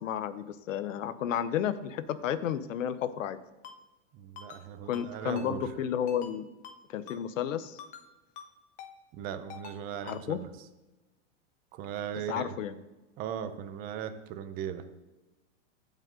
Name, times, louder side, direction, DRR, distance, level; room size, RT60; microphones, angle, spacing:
voice 1, 0.0-3.4 4.9-6.5 6.9-7.8 10.0-10.4 12.3-12.7, left 9 dB, 90° left, 13 dB, 0.8 m, -32 dB
Ringtone, 3.6-3.8 4.4-4.6 4.9-5.1 5.4-5.5 6.1-6.3 6.6-6.8 7.1-7.2 7.8-8.1 8.4-8.5 8.8-8.9 9.5-9.8 10.1-10.2, left 7 dB, 20° left, 0.6 m, -46 dB
voice 2, 4.1-5.7 9.1-10.5 11.7-12.5 13.2-14.8, right 9 dB, 25° right, 10 dB, 0.5 m, -38 dB
15.0 x 5.3 x 3.8 m, 1.1 s
supercardioid pair, 150°, 38 cm